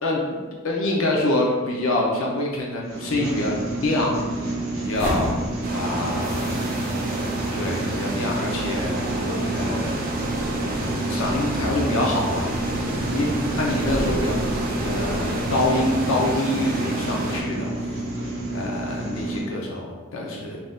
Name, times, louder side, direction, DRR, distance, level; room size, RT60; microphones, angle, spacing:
voice 1, 0.0-4.2 4.7-5.5 5.7-9.1 9.5-9.9 11.1-12.5 12.8-14.3 14.8-17.7 18.5-20.6, left 1 dB, 70° left, -2 dB, 0.5 m, -26 dB
sound 1, 2.8-19.4, right 1 dB, 75° right, 0.9 m, -30 dB
sound 2, 4.9-15.8, equal, 40° left, 1.2 m, -34 dB
sound 3, 5.6-17.4, right 2 dB, 40° right, 0.4 m, -30 dB
3.4 x 2.6 x 2.3 m, 1.4 s
head